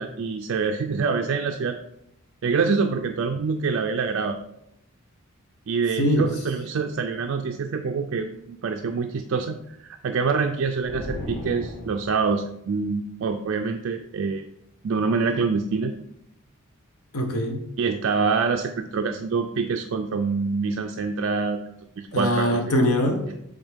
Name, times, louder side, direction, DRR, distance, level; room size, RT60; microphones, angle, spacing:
voice 1, 0.0-1.8 2.4-4.4 5.7-14.5 14.8-15.9 17.8-21.6 22.0-22.6, right 5 dB, 60° right, 4 dB, 0.4 m, -26 dB
voice 2, 6.0-6.3 17.1-17.6 22.1-23.3, equal, 85° left, 5 dB, 0.9 m, -22 dB
sound 1, 10.8-12.4, left 1 dB, 50° left, 1.6 m, -35 dB
8.0 x 3.5 x 3.5 m, 0.78 s
head